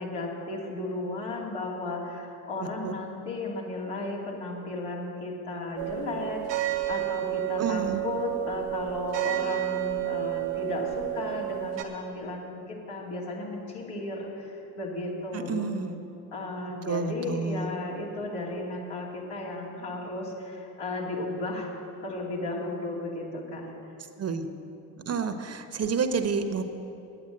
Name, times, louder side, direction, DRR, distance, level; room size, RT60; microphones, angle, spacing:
voice 1, 0.0-15.7 16.3-21.8 22.0-23.7, left 2 dB, 65° left, -3 dB, 2.8 m, -34 dB
voice 2, 2.6-2.9 7.6-8.0 15.3-16.0 16.8-17.7 24.2-24.5 25.0-26.6, right 5 dB, 35° right, 7 dB, 1.1 m, -29 dB
sound 1, 5.8-11.8, right 17 dB, 70° right, 1.3 m, -31 dB
8.9 x 8.8 x 7.7 m, 2.9 s
hypercardioid pair, 60°, 45 cm